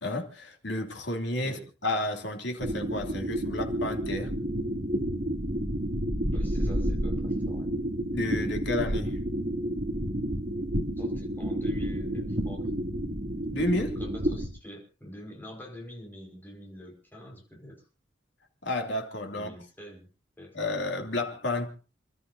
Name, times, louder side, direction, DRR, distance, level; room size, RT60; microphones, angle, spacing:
voice 1, 0.0-4.3 8.1-9.2 13.5-14.0 18.6-19.5 20.5-21.7, left 1 dB, 70° left, 2.9 m, -31 dB
sound 1, 2.6-14.5, right 1 dB, 50° right, 2.8 m, -30 dB
voice 2, 6.3-7.7 11.0-12.6 14.0-17.8 19.3-20.1 20.4-20.5, equal, 10° left, 5.3 m, -45 dB
29.5 x 12.5 x 2.7 m
head